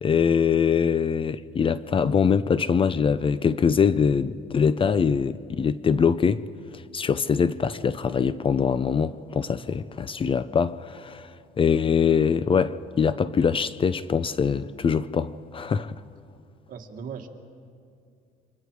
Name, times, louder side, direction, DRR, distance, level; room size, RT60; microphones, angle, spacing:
voice 1, 0.0-6.4 6.7-11.3 11.6-15.9, left 6 dB, 30° left, 0.6 m, -23 dB
voice 2, 16.7-17.3, right 7 dB, 55° right, 1.9 m, -37 dB
28.5 x 25.0 x 4.8 m
cardioid pair, 110°, 17 cm